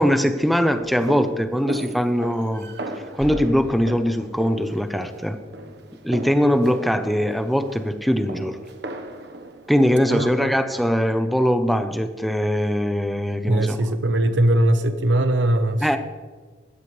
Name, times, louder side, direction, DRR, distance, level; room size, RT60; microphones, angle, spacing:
voice 1, 0.0-2.7 3.2-5.4 6.0-8.6 9.7-13.8 15.8-16.0, equal, ahead, 8 dB, 0.8 m, -21 dB
sound 1, 0.6-9.9, right 1 dB, 60° right, 1.3 m, -36 dB
voice 2, 10.1-10.5 13.5-16.0, right 1 dB, 80° right, 9 dB, 1.1 m, -20 dB
16.5 x 13.5 x 3.3 m, 1.4 s
head